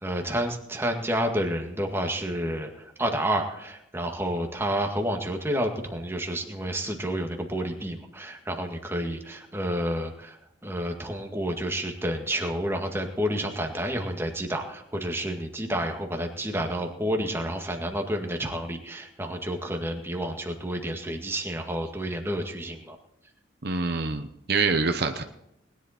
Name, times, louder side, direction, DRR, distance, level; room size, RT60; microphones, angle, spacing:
voice 1, 0.0-10.4 10.6-23.0, equal, 15° right, 2 dB, 1.9 m, -30 dB
voice 2, 23.6-25.2, right 4 dB, 55° right, 7 dB, 1.0 m, -26 dB
20.5 x 11.0 x 4.4 m, 0.82 s
head